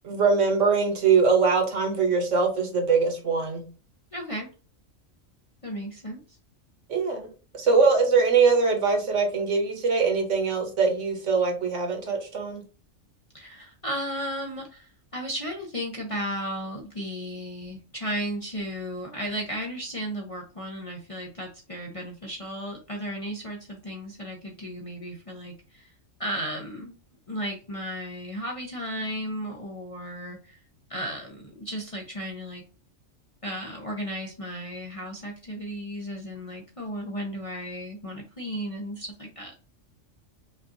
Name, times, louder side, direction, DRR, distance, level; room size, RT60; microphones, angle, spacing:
voice 1, 0.0-3.6 6.9-7.3 7.5-12.6, right 4 dB, 65° right, 1.4 m, -22 dB
voice 2, 4.1-4.5 5.6-6.2 13.3-25.9 26.2-26.9 27.3-30.6 30.9-32.6 33.4-39.5, equal, 30° left, 0.7 m, -34 dB
5.2 x 2.6 x 2.6 m
omnidirectional pair, 1.4 m